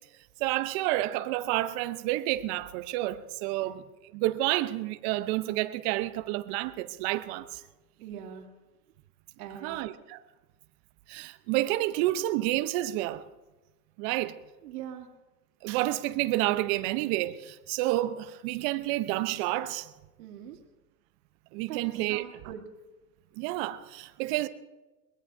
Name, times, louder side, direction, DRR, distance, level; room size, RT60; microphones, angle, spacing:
voice 1, 0.4-3.8 4.1-7.6 9.6-10.2 11.1-13.2 14.0-14.3 15.6-19.9 21.5-22.2 23.4-24.5, right 16 dB, 40° right, 0.8 m, -29 dB
voice 2, 8.0-8.5 9.4-9.9 14.6-15.1 20.2-20.6 21.7-21.8 22.1-22.6, right 10 dB, 65° right, 2.5 m, -41 dB
23.5 x 19.5 x 2.7 m
hypercardioid pair, 125°, 50 cm